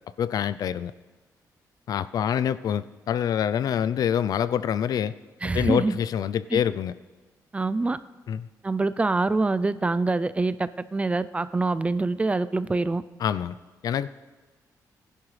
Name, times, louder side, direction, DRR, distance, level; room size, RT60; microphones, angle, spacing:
voice 1, 0.2-0.9 1.9-5.2 5.5-6.9 8.3-8.5 13.2-13.5 13.8-14.1, left 9 dB, 70° left, 15 dB, 0.4 m, -26 dB
voice 2, 5.4-6.0 6.5-6.6 7.5-8.0 8.6-13.0, right 3 dB, 20° right, 14 dB, 0.4 m, -25 dB
20.0 x 11.0 x 3.2 m, 1.3 s
cardioid pair, 110°, 7 cm